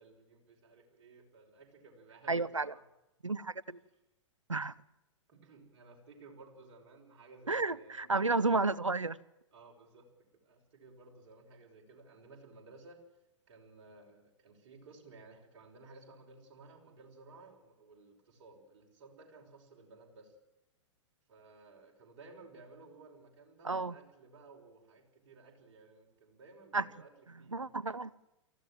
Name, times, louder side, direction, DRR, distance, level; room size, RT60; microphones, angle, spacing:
voice 1, 0.0-2.8 5.3-8.7 9.5-13.0 13.5-20.4 21.3-27.6, right 3 dB, 50° right, 0 dB, 5.9 m, -56 dB
voice 2, 2.3-2.7 3.2-3.8 4.5-4.7 7.5-9.2 23.6-23.9 26.7-26.8 27.5-28.1, right 3 dB, 85° right, 21 dB, 0.8 m, -31 dB
24.0 x 15.5 x 7.6 m, 0.94 s
figure-of-eight pair, 105°, 16 cm